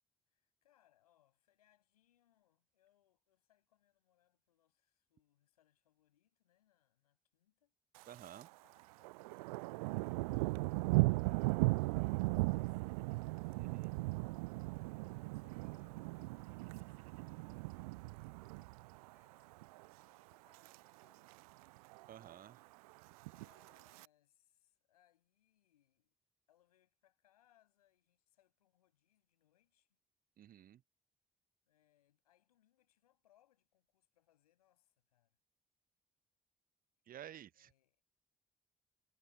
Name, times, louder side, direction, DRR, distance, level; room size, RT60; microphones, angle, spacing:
voice 1, 0.3-7.7 8.3-9.2 10.3-14.0 15.1-21.8 23.2-26.1 26.5-30.0 31.7-35.4 37.5-38.0, left 12 dB, 75° left, 7.8 m, -76 dB
Thunder, 8.0-8.5 8.8-19.1 19.5-19.9 20.3-20.8 21.0-21.1 21.3-21.4 21.8-22.3 23.1-24.1, right 25 dB, 70° right, 0.5 m, -37 dB
voice 2, 8.1-8.5 13.6-13.9 22.1-22.6 30.4-30.8 37.1-37.7, right 11 dB, 50° right, 1.0 m, -52 dB
figure-of-eight pair, 40°, 19 cm